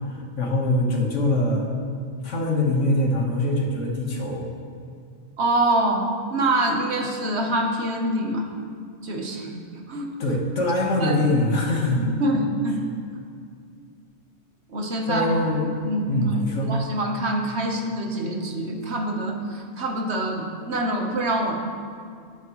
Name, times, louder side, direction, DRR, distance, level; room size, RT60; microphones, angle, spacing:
voice 1, 0.0-1.7 2.2-4.4 10.2-12.1 15.1-15.8 16.1-16.7, left 1 dB, 80° left, 0 dB, 1.7 m, -23 dB
voice 2, 5.4-8.5 9.0-10.1 11.0-11.2 12.0-12.8 14.7-15.3 15.8-16.2 16.6-21.5, right 1 dB, 65° right, 2 dB, 1.4 m, -25 dB
13.0 x 10.5 x 3.1 m, 2.2 s
omnidirectional pair, 1.3 m